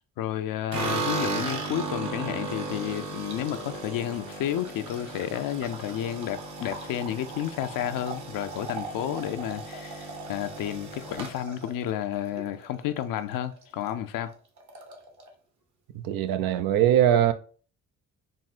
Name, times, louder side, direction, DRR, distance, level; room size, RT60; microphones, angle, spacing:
voice 1, 0.2-14.3, left 11 dB, 70° left, 0.5 m, -31 dB
sound 1, 0.7-13.0 13.3-13.9 14.2-14.3 14.6-15.3, right 3 dB, 55° right, 1.0 m, -36 dB
voice 2, 15.9-17.3, right 11 dB, 85° right, 0.5 m, -21 dB
3.6 x 2.1 x 4.1 m
supercardioid pair, 60°, 34 cm